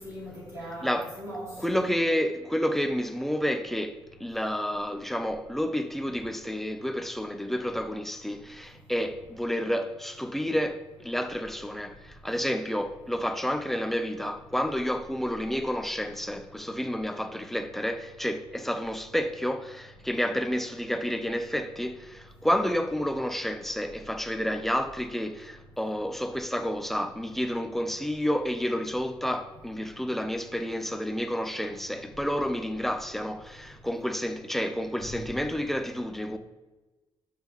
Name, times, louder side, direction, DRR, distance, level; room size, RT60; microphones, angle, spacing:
voice 1, 0.0-1.9 35.0-35.1, equal, 30° right, 2.8 m, -40 dB
voice 2, 0.8-1.1 1.6-36.4, equal, 5° left, 0.4 m, -30 dB
12.0 x 5.7 x 3.0 m
wide cardioid pair, 165°, 9 cm